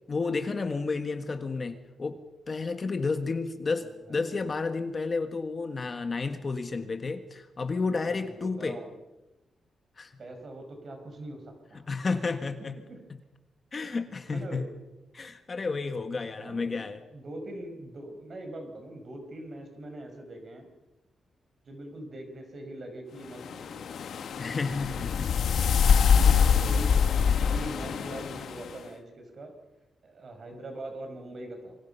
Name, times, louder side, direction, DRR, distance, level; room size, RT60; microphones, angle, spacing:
voice 1, 0.1-8.8 10.0-10.2 11.9-12.8 13.7-14.6 15.1-17.0 24.4-25.3, left 4 dB, 30° left, 7 dB, 1.5 m, -31 dB
voice 2, 8.0-8.9 10.2-11.4 11.7-11.8 12.9-13.0 14.3-14.7 16.4-20.7 21.7-23.4 23.7-23.8 26.1-27.0 27.4-29.5 30.0-31.8, right 1 dB, 40° right, 5 dB, 5.3 m, -42 dB
sound 1, 23.4-28.7, left 6 dB, 70° left, 1.5 m, -24 dB
27.5 x 24.5 x 5.6 m, 1.0 s
wide cardioid pair, 160°, 0 cm